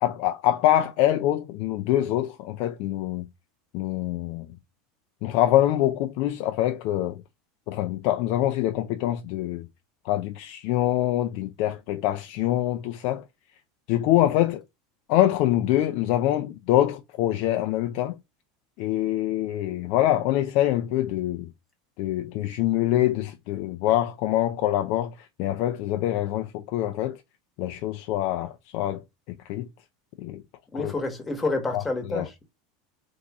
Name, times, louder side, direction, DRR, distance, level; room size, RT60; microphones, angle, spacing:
voice 1, 0.0-3.2 3.7-4.5 5.2-7.2 7.7-9.7 10.0-13.2 13.9-14.6 15.1-18.2 18.8-21.5 22.0-27.2 27.6-29.0 29.5-29.7 30.2-30.4 30.8-30.9 31.7-31.8 32.1-32.2, left 13 dB, 60° left, 0.4 m, -25 dB
voice 2, 30.7-32.5, left 3 dB, 15° left, 1.2 m, -29 dB
3.5 x 2.6 x 2.9 m
supercardioid pair, 115°, 0 cm